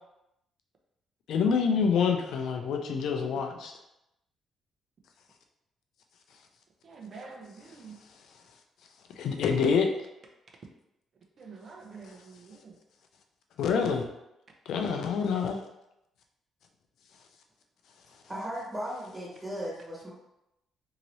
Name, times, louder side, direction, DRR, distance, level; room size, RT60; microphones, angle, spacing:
voice 1, 1.3-3.7 9.2-9.9 13.6-14.1 14.7-15.6, left 6 dB, 75° left, 4 dB, 0.4 m, -26 dB
voice 2, 6.8-8.0 11.4-12.8 14.9-15.1, right 4 dB, 50° right, 1 dB, 0.6 m, -47 dB
voice 3, 18.3-20.1, equal, 20° right, -6 dB, 1.2 m, -36 dB
2.8 x 2.7 x 3.0 m, 0.86 s
cardioid pair, 90°, 0 cm